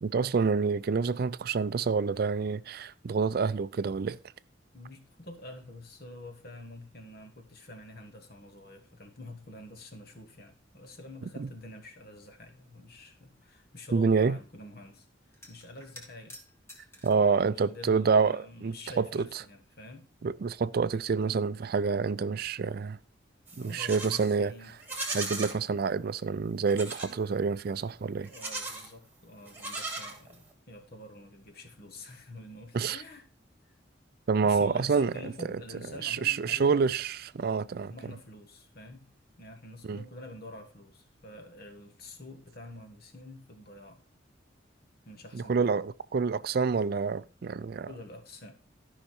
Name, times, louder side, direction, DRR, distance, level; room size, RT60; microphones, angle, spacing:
voice 1, 0.0-4.2 11.4-11.5 13.9-14.4 17.0-19.3 20.2-23.0 23.6-24.5 25.1-28.3 32.7-33.0 34.3-35.3 36.0-37.9 39.8-40.0 45.3-47.9, right 5 dB, 55° right, 0.4 m, -27 dB
voice 2, 4.7-15.1 15.5-16.4 17.2-20.1 23.5-24.7 28.3-33.2 33.6-33.7 34.4-36.9 37.9-39.1 39.4-44.0 45.0-45.7 47.8-48.5, left 2 dB, 55° left, 1.7 m, -47 dB
sound 1, 15.3-17.3 18.2-19.0 19.3-19.4 20.7-20.8 21.1-22.1 25.7-25.9 26.2-26.4, left 1 dB, 15° left, 2.0 m, -53 dB
Livestock farm animals working animals, 23.5-24.2 24.8-25.6 26.7-27.2 28.2-28.9 29.5-30.5, right 3 dB, 10° right, 2.3 m, -37 dB
13.0 x 5.7 x 4.4 m
head